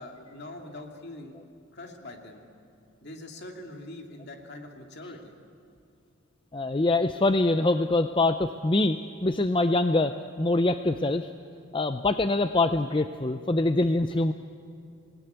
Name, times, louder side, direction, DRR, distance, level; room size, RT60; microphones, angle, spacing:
voice 1, 0.0-1.4 1.7-2.4 3.0-5.3, left 1 dB, 50° left, 3 dB, 2.8 m, -43 dB
voice 2, 6.5-11.3 11.7-14.3, left 2 dB, 25° left, 9 dB, 0.5 m, -24 dB
27.0 x 18.5 x 9.4 m, 2.6 s
head